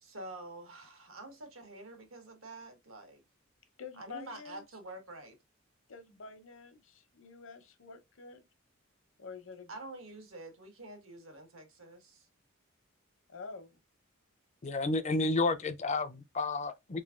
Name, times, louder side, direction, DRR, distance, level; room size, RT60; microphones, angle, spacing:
voice 1, 0.0-3.2 4.0-5.4 9.7-12.3, right 2 dB, 85° right, 1.3 m, -47 dB
voice 2, 3.8-4.6 5.9-8.4 9.2-9.7 13.3-13.8, left 5 dB, 65° left, 0.8 m, -48 dB
voice 3, 14.6-17.0, left 3 dB, 35° left, 0.4 m, -31 dB
3.4 x 3.1 x 2.4 m
head